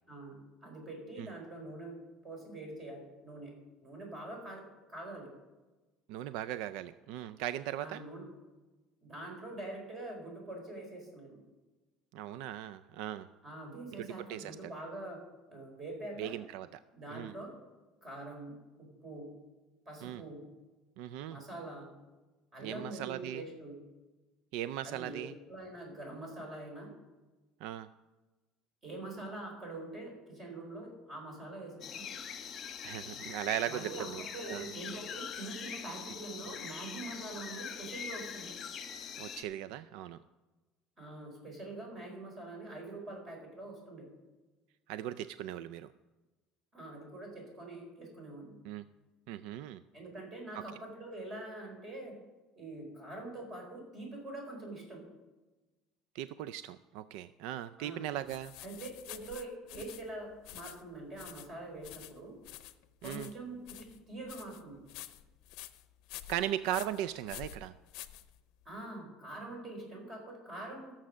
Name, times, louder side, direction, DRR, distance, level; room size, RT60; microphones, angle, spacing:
voice 1, 0.1-3.5 3.8-4.6 4.9-5.3 7.8-8.3 9.0-11.4 13.4-15.2 15.5-16.4 16.9-17.5 18.0-19.3 19.9-20.4 21.3-21.9 22.5-23.8 24.8-25.2 25.5-26.9 28.8-32.2 33.7-38.5 41.0-44.1 46.7-48.6 49.9-52.2 52.6-55.0 57.8-58.1 58.6-62.3 63.0-64.8 68.6-70.9, right 2 dB, 25° right, 1 dB, 4.2 m, -44 dB
voice 2, 6.1-8.0 12.1-13.3 14.0-14.6 16.2-16.8 17.1-17.3 20.0-20.2 21.0-21.4 22.6-23.4 24.5-25.3 27.6-27.9 32.8-34.7 39.2-40.2 44.9-45.9 48.6-48.9 49.3-49.8 50.5-50.6 56.1-58.5 63.0-63.3 66.3-67.7, right 12 dB, 75° right, 14 dB, 0.4 m, -38 dB
sound 1, 31.8-39.4, left 7 dB, 35° left, 1.1 m, -43 dB
sound 2, 58.3-68.7, left 14 dB, 65° left, 0.6 m, -49 dB
13.5 x 7.2 x 6.4 m, 1.2 s
cardioid pair, 145°, 0 cm